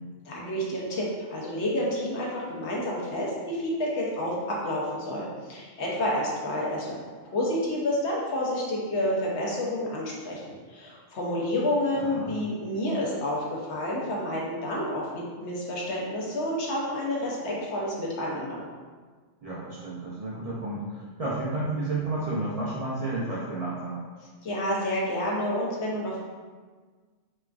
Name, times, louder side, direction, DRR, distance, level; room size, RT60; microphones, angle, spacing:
voice 1, 0.2-10.4 10.7-18.6 24.4-26.2, left 1 dB, 65° left, -4 dB, 1.0 m, -29 dB
voice 2, 12.0-12.3 19.4-24.0, right 2 dB, 75° right, -8 dB, 0.3 m, -31 dB
4.1 x 2.4 x 2.3 m, 1.5 s
omnidirectional pair, 1.3 m